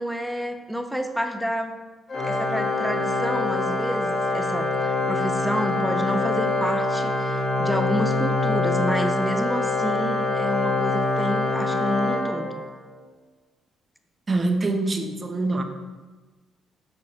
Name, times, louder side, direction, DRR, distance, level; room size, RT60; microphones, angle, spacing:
voice 1, 0.0-1.7 2.2-12.6, equal, ahead, 6 dB, 0.8 m, -29 dB
Organ, 2.1-12.9, left 2 dB, 45° left, 1.9 m, -25 dB
voice 2, 14.3-15.6, right 2 dB, 30° right, 5 dB, 0.9 m, -24 dB
8.7 x 6.0 x 3.1 m, 1.3 s
cardioid pair, 90°, 0 cm